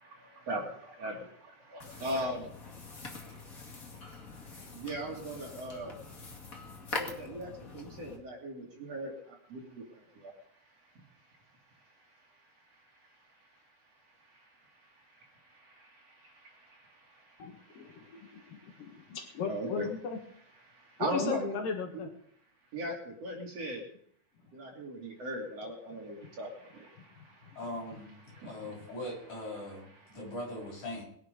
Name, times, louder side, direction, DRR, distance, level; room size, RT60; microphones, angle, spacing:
voice 1, 0.0-2.5 3.3-3.5 4.5-6.0 6.9-10.3 14.3-14.5 15.0-19.1 19.5-19.9 20.6-21.6 21.9-22.0 22.7-23.9 24.5-27.6 28.3-28.9 30.0-30.2, right 1 dB, 50° right, 0 dB, 3.7 m, -40 dB
sound 1, 1.8-8.2, left 3 dB, 30° left, 2.1 m, -44 dB
voice 2, 17.4-17.9 18.3-20.2 21.0-22.1, left 6 dB, 75° left, 3 dB, 3.4 m, -36 dB
voice 3, 27.6-28.1 28.4-31.0, left 1 dB, 60° left, -2 dB, 8.4 m, -40 dB
21.5 x 10.5 x 5.3 m, 0.64 s
omnidirectional pair, 4.0 m